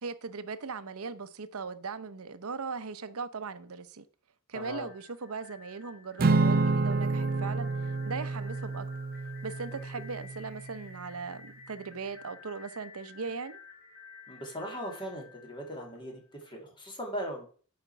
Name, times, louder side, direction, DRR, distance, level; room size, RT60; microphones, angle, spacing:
voice 1, 0.0-4.0 4.5-8.9 9.4-13.6, right 4 dB, 80° right, 0.8 m, -39 dB
voice 2, 4.5-4.9 14.3-17.4, equal, 20° left, 2.7 m, -39 dB
sound 1, 4.6-16.4, left 5 dB, 50° left, 4.1 m, -52 dB
Acoustic guitar / Strum, 6.2-10.6, right 3 dB, 45° right, 0.6 m, -29 dB
9.1 x 5.2 x 6.0 m
head